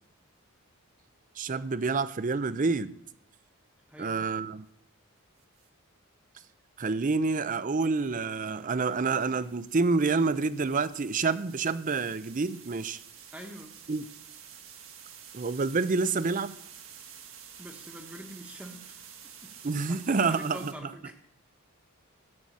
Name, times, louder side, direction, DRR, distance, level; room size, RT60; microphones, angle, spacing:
voice 1, 1.4-2.9 4.0-4.7 6.8-13.0 13.9-14.1 15.3-16.6 19.6-20.9, right 4 dB, 35° right, 15 dB, 0.5 m, -28 dB
voice 2, 3.9-4.2 13.3-13.7 17.6-18.9 19.9-21.1, right 1 dB, 5° right, 3 dB, 1.2 m, -44 dB
sound 1, 5.4-5.7 7.8-20.7, right 8 dB, 60° right, 1.6 m, -50 dB
14.0 x 7.8 x 8.4 m, 0.73 s
head